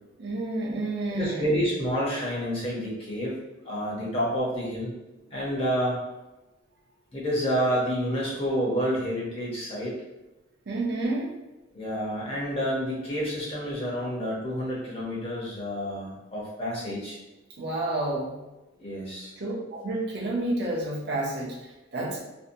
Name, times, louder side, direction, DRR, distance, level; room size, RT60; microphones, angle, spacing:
voice 1, 0.2-1.6 10.7-11.3 17.6-18.4 19.4-22.2, right 2 dB, 55° right, -1 dB, 0.5 m, -30 dB
voice 2, 1.1-3.4 3.6-4.9 5.3-6.0 7.1-9.9 11.7-17.2 18.8-19.3, equal, 30° left, -5 dB, 0.7 m, -29 dB
2.7 x 2.1 x 2.5 m, 1.0 s
head